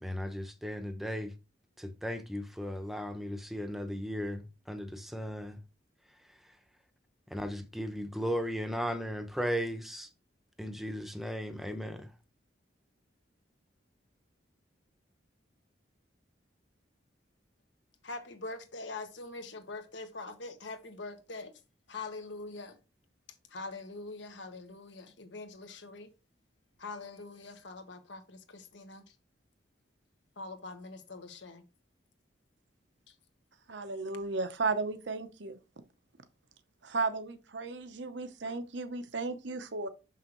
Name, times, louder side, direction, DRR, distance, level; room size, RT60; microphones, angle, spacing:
voice 1, 0.0-1.3 1.8-5.6 6.3-6.6 7.3-10.1 10.6-12.1, equal, ahead, 0.7 m, -36 dB
voice 2, 18.0-21.6 21.9-22.8 23.5-26.1 26.8-29.1 30.4-31.6 33.1-33.2, left 3 dB, 80° left, 1.2 m, -43 dB
voice 3, 33.7-35.6 36.8-39.9, right 3 dB, 75° right, 0.8 m, -34 dB
6.2 x 5.7 x 3.0 m
head